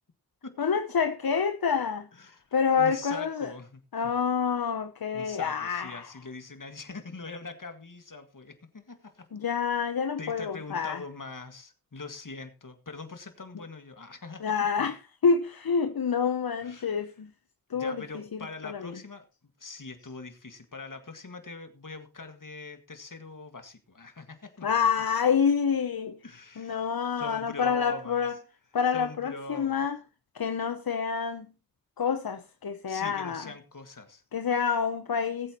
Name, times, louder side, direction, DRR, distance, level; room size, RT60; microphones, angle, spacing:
voice 1, 0.6-2.1 2.5-3.5 3.9-6.1 9.3-11.0 14.4-15.0 15.2-17.3 17.7-18.0 18.6-19.0 24.6-26.2 26.6-28.4 28.7-30.0 30.3-31.5 32.0-33.5 34.3-35.6, left 6 dB, 85° left, 0.8 m, -27 dB
voice 2, 2.8-3.8 5.1-9.3 10.2-14.9 16.6-17.0 17.7-19.3 19.6-24.8 26.2-26.8 27.2-28.3 28.9-29.8 32.9-34.2, left 3 dB, 60° left, 1.9 m, -42 dB
19.0 x 8.4 x 3.0 m
wide cardioid pair, 45°, 35 cm